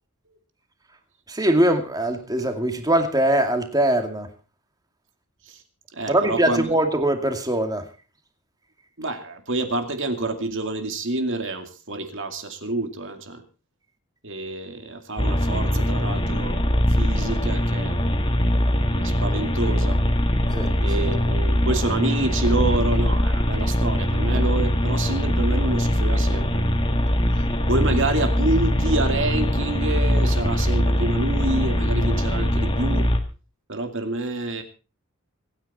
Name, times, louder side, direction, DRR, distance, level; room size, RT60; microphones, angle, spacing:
voice 1, 1.3-4.3 6.1-7.8 20.5-20.7, right 1 dB, 15° right, 5 dB, 2.3 m, -22 dB
voice 2, 5.9-6.7 9.0-13.4 14.2-16.6 16.9-18.0 18.8-20.0 20.8-26.7 27.7-33.1 33.7-34.6, right 2 dB, 60° right, 6 dB, 2.4 m, -28 dB
sound 1, 15.2-33.2, equal, 20° left, 1.8 m, -22 dB
25.5 x 9.7 x 4.2 m, 0.34 s
head